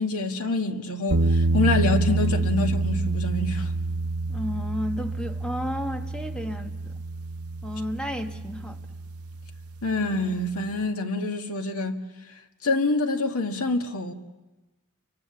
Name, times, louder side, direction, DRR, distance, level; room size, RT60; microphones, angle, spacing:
voice 1, 0.0-3.7 9.8-12.0 12.6-14.1, left 2 dB, 85° left, 1.9 m, -26 dB
sound 1, 1.1-10.0, right 3 dB, 75° right, 0.8 m, -27 dB
voice 2, 4.3-6.9 7.6-8.8, equal, 5° left, 1.3 m, -32 dB
29.0 x 24.0 x 7.2 m
head